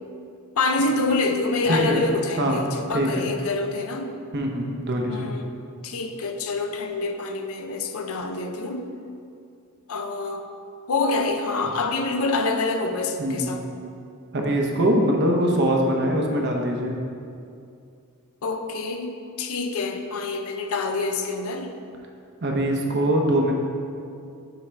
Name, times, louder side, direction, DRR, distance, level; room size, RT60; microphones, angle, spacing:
voice 1, 0.6-4.1 5.1-5.4 5.8-8.9 9.9-10.5 10.9-13.6 18.4-21.7, left 3 dB, 70° left, 5 dB, 0.5 m, -26 dB
voice 2, 1.7-2.0 2.4-2.6 2.9-3.3 4.3-5.3 13.2-13.5 14.3-17.0 22.4-23.5, right 1 dB, 50° right, 1 dB, 0.8 m, -23 dB
7.9 x 3.9 x 4.5 m, 2.5 s
head